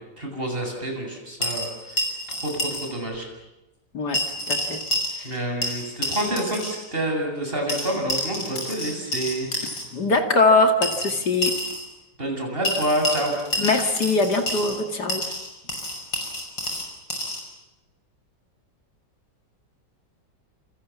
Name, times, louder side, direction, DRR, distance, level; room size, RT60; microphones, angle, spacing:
voice 1, 0.2-2.0 2.3-3.3 5.2-9.5 12.2-13.3, right 1 dB, 30° right, 2 dB, 8.1 m, -28 dB
sound 1, 1.4-2.9 3.1-3.2 4.1-5.4 5.6-6.8 7.7-9.8 10.8-11.9 12.6-14.8 15.1-17.4, left 1 dB, 80° left, 6.7 m, -29 dB
voice 2, 4.5-4.8 9.9-11.5 13.6-15.2, left 3 dB, 65° left, 5 dB, 2.8 m, -21 dB
29.0 x 28.0 x 7.2 m, 0.97 s
omnidirectional pair, 1.9 m